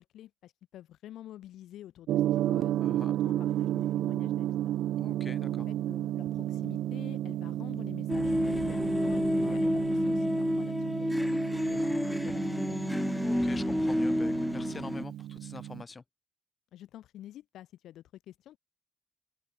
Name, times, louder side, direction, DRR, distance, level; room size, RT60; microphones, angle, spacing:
voice 1, 0.0-4.7 5.5-12.9 16.7-18.6, left 12 dB, 80° left, 1.7 m, -49 dB
Gong, 2.1-15.8, right 13 dB, 80° right, 0.5 m, -33 dB
voice 2, 2.8-3.2 5.0-5.7 9.4-9.6 11.7-12.0 13.2-16.0, left 4 dB, 30° left, 1.3 m, -44 dB
sound 1, 8.1-15.0, left 1 dB, 5° left, 0.4 m, -29 dB
open air
cardioid pair, 90°, 0 cm